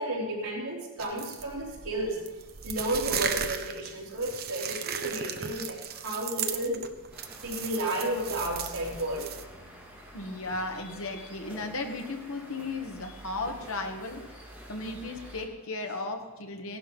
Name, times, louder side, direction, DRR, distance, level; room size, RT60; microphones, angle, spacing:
voice 1, 0.0-2.2 2.6-6.9 7.4-9.3, right 1 dB, 85° right, -3 dB, 3.6 m, -32 dB
sound 1, 1.0-9.4, right 8 dB, 45° right, 0.8 m, -36 dB
sound 2, 7.1-15.4, equal, 5° right, 3.3 m, -48 dB
voice 2, 10.1-14.2 14.7-16.8, left 2 dB, 70° left, 4 dB, 1.8 m, -35 dB
16.0 x 11.5 x 5.5 m, 1.2 s
head